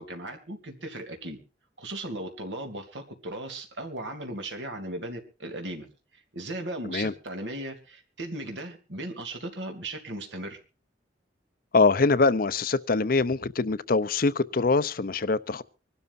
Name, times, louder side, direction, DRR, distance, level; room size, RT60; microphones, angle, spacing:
voice 1, 0.0-1.4 1.8-5.9 6.3-10.6, right 1 dB, 75° right, 2.8 m, -37 dB
voice 2, 11.7-15.6, left 3 dB, 50° left, 0.6 m, -23 dB
25.0 x 12.5 x 2.6 m
head